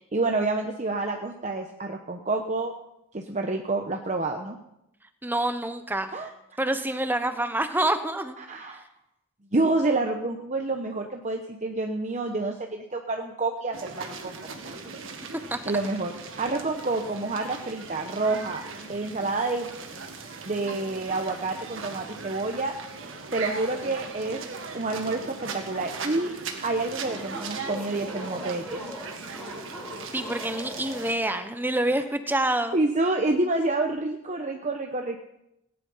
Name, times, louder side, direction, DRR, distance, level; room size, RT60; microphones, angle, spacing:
voice 1, 0.1-2.7 3.1-4.6 6.1-6.3 8.4-8.8 9.5-14.4 14.6-15.0 15.7-18.6 18.9-19.7 20.5-22.7 23.3-24.4 24.7-26.3 26.6-28.9 32.7-35.2, right 2 dB, 35° right, 3 dB, 0.9 m, -28 dB
voice 2, 5.2-6.1 6.6-8.3 15.5-15.6 30.1-32.8, right 1 dB, 10° right, 9 dB, 0.9 m, -27 dB
sound 1, 13.7-31.1, right 4 dB, 60° right, 1.8 m, -39 dB
sound 2, 26.8-31.3, left 1 dB, 5° left, 2.5 m, -41 dB
17.5 x 10.5 x 5.7 m, 0.84 s
head